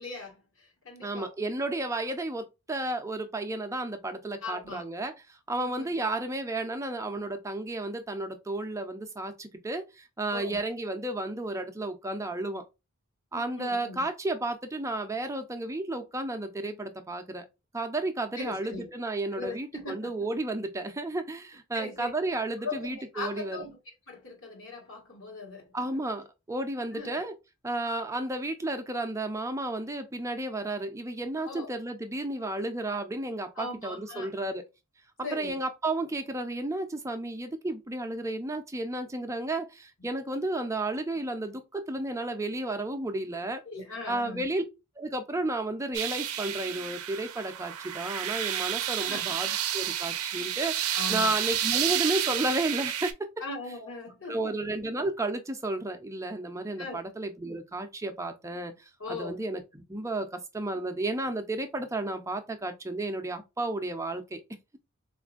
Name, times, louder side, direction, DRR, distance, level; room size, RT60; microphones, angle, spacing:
voice 1, 0.0-1.3 4.4-4.8 5.6-6.0 10.3-10.6 13.5-14.0 18.4-18.9 19.3-20.1 21.7-22.1 22.6-23.8 24.1-26.0 26.9-27.2 31.5-31.7 33.6-34.5 35.2-35.6 40.0-40.1 43.7-44.5 49.0-49.2 50.9-51.4 53.4-54.5 56.8-57.0 59.0-59.4, left 3 dB, 55° left, 1.3 m, -39 dB
voice 2, 1.0-12.6 13.3-17.4 17.7-23.7 25.7-27.3 27.6-34.6 35.3-43.6 44.1-44.6 45.0-53.3 54.3-64.4, right 2 dB, 15° right, 0.5 m, -32 dB
sound 1, 45.9-53.1, right 11 dB, 70° right, 0.5 m, -30 dB
4.0 x 2.5 x 2.3 m
head